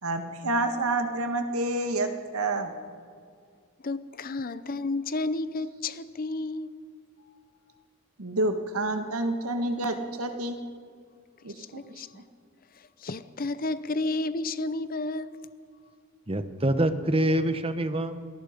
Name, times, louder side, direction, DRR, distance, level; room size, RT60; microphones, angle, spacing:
voice 1, 0.0-2.7 8.2-10.5 11.4-11.5, right 2 dB, 90° right, 1.7 m, -28 dB
voice 2, 3.8-6.8 11.6-12.2 12.8-15.4, left 2 dB, 40° left, 0.7 m, -32 dB
voice 3, 16.3-18.2, right 1 dB, 25° right, 1.0 m, -25 dB
27.0 x 18.5 x 5.2 m
head